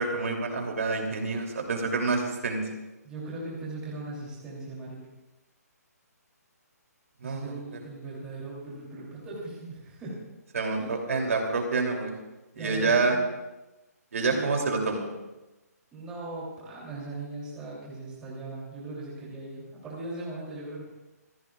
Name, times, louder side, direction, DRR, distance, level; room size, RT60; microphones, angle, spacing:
voice 1, 0.0-2.6 7.2-7.6 10.5-12.2 12.6-13.2 14.1-15.1, right 4 dB, 55° right, 2 dB, 3.0 m, -27 dB
voice 2, 3.0-5.0 7.2-10.2 10.8-10.9 12.5-13.2 14.2-14.5 15.9-20.8, right 2 dB, 10° right, -6 dB, 3.0 m, -39 dB
26.0 x 15.5 x 2.4 m, 1.1 s
hypercardioid pair, 175°, 9 cm